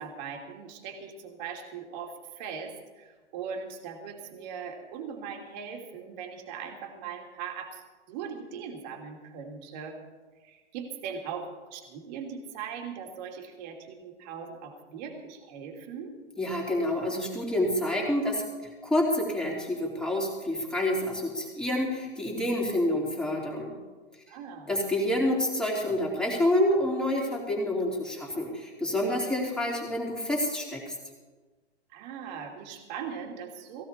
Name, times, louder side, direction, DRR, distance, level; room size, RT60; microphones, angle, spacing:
voice 1, 0.0-10.0 10.4-16.1 24.3-24.7 31.9-33.8, right 6 dB, 40° right, 2 dB, 2.8 m, -40 dB
voice 2, 16.4-18.4 18.8-23.7 24.7-30.9, left 1 dB, ahead, -3 dB, 3.3 m, -28 dB
18.5 x 16.0 x 4.5 m, 1.3 s
hypercardioid pair, 140°, 35 cm